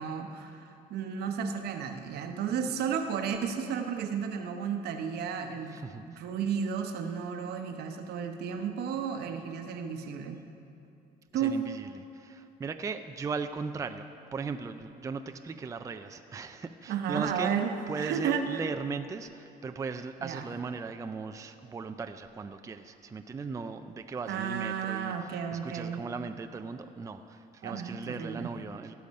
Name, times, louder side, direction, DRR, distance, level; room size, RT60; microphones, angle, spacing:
voice 1, 0.0-10.4 11.3-11.6 16.9-17.8 18.0-18.6 20.2-20.4 24.3-26.0 27.6-28.5, right 7 dB, 70° right, 5 dB, 1.0 m, -33 dB
voice 2, 5.7-6.0 11.3-17.5 17.9-25.1 25.5-28.9, right 5 dB, 20° right, 8 dB, 0.4 m, -38 dB
16.5 x 7.0 x 5.3 m, 2.7 s
cardioid pair, 110°, 17 cm